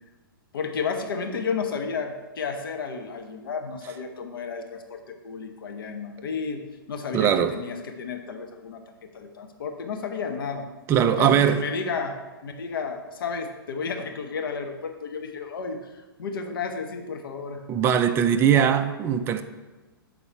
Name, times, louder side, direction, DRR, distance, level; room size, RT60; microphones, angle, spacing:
voice 1, 0.5-8.8 9.1-10.7 11.0-17.7, left 5 dB, 70° left, 4 dB, 0.9 m, -32 dB
voice 2, 7.1-7.5 10.9-11.7 17.7-19.4, right 8 dB, 20° right, 8 dB, 0.4 m, -20 dB
7.3 x 3.9 x 4.5 m, 1.2 s
hypercardioid pair, 125°, 12 cm